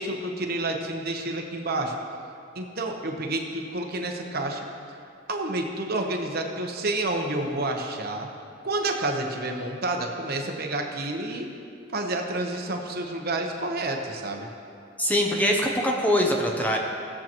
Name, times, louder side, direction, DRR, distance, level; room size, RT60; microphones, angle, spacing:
voice 1, 0.0-1.9 2.5-4.6 5.3-8.3 8.6-11.4 11.9-14.5, right 2 dB, 50° right, 2 dB, 0.9 m, -29 dB
voice 2, 15.0-16.8, equal, 10° left, 1 dB, 0.7 m, -23 dB
17.0 x 7.4 x 3.0 m, 2.5 s
head